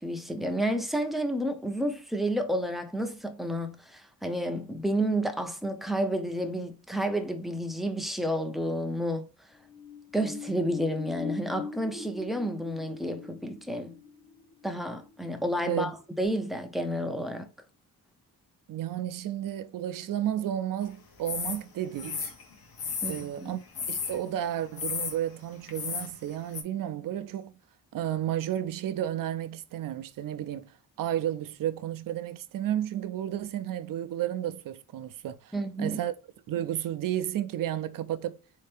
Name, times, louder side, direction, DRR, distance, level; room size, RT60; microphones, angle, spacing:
voice 1, 0.0-9.3 10.1-14.0 14.6-17.5 23.0-23.6 35.5-36.0, right 1 dB, ahead, 0.4 m, -30 dB
sound 1, 9.5-15.9 16.2-16.3, left 5 dB, 45° left, 0.9 m, -42 dB
voice 2, 18.7-22.3 23.1-27.5 27.9-36.1 36.5-38.4, right 11 dB, 60° right, 0.4 m, -32 dB
sound 2, 21.3-21.6 22.0-23.3 23.8-24.2 24.8-25.2 25.7-26.1 26.5-26.6, left 5 dB, 70° left, 0.8 m, -33 dB
4.2 x 2.8 x 3.3 m
wide cardioid pair, 180°, 38 cm